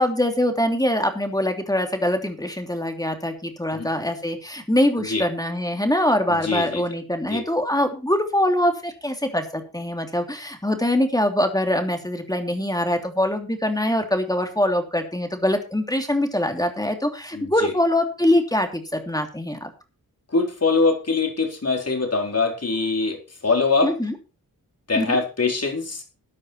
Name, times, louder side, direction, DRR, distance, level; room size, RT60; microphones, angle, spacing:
voice 1, 0.0-19.7 23.8-24.1 25.0-25.2, left 1 dB, 10° left, 5 dB, 3.0 m, -23 dB
voice 2, 6.3-6.8 7.3-7.4 17.3-17.7 20.3-23.9 24.9-26.0, left 3 dB, 45° left, 3 dB, 4.2 m, -23 dB
13.5 x 9.6 x 4.3 m, 0.31 s
cardioid pair, 65°, 34 cm